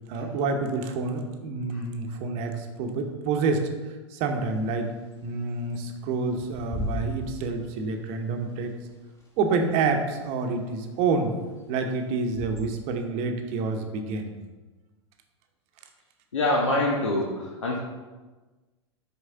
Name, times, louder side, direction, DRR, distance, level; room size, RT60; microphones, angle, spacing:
voice 1, 0.1-4.9 5.2-8.7 9.4-11.4 11.7-14.4, right 4 dB, 45° right, 5 dB, 0.9 m, -28 dB
Bird / Wind, 4.3-13.0, left 1 dB, 20° left, 1.6 m, -40 dB
voice 2, 16.3-17.8, left 1 dB, 80° left, -2 dB, 1.0 m, -25 dB
6.5 x 4.7 x 3.8 m, 1.2 s
figure-of-eight pair, 95°, 15 cm